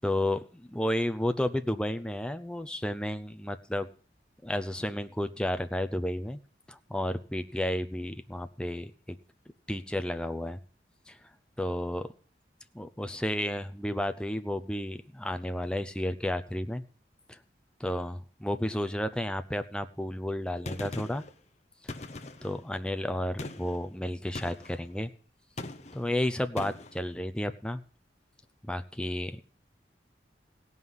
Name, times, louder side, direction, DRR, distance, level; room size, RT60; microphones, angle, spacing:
voice 1, 0.0-3.9 4.4-6.4 6.7-8.9 9.7-10.6 11.1-11.2 11.6-12.1 12.7-16.8 17.3-17.4 17.8-21.2 21.8-21.9 22.4-25.1 25.9-27.8 28.6-29.4, left 1 dB, 5° left, 10 dB, 0.6 m, -32 dB
Gunshot gunfire, 20.7-21.3 21.9-22.6 23.4-23.8 24.4-24.8 25.6-26.1 26.6-27.0, left 2 dB, 40° left, 0.9 m, -40 dB
16.5 x 5.6 x 7.9 m, 0.43 s
head